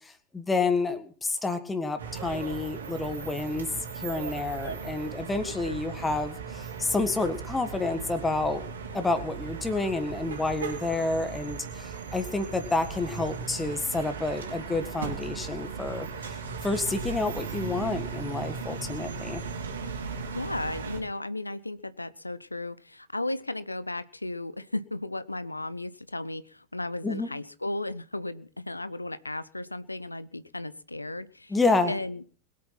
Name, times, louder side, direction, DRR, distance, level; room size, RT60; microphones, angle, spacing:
voice 1, 0.3-3.7 3.9-8.6 8.9-16.1 16.6-19.4 27.0-27.3 31.5-31.9, left 3 dB, 10° left, 8 dB, 1.7 m, -29 dB
sound 1, 2.0-21.0, right 5 dB, 70° right, 3.3 m, -37 dB
voice 2, 5.4-5.8 20.3-31.6 31.9-32.3, left 2 dB, 85° left, 16 dB, 0.7 m, -35 dB
21.5 x 8.6 x 5.8 m, 0.42 s
figure-of-eight pair, 90°, 0 cm